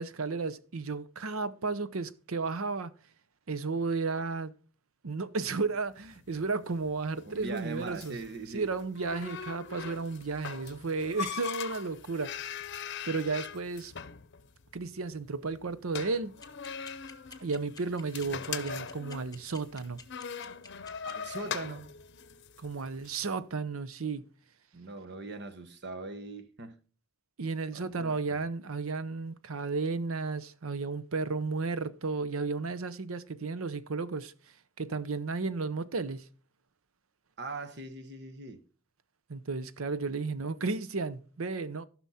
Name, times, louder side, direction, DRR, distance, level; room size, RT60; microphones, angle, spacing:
voice 1, 0.0-2.9 3.5-4.5 5.0-8.2 8.5-13.9 14.7-16.3 17.4-20.0 22.6-24.3 27.4-34.3 34.8-36.3 39.3-41.9, right 4 dB, 80° right, 0.7 m, -33 dB
sound 1, 6.0-23.2, left 7 dB, 55° left, 0.7 m, -42 dB
voice 2, 7.3-8.7 21.0-21.9 24.7-26.8 27.7-28.4 37.4-38.6, right 3 dB, 55° right, 1.1 m, -41 dB
sound 2, 16.4-21.1, left 5 dB, 20° left, 1.0 m, -48 dB
13.5 x 6.1 x 4.2 m
head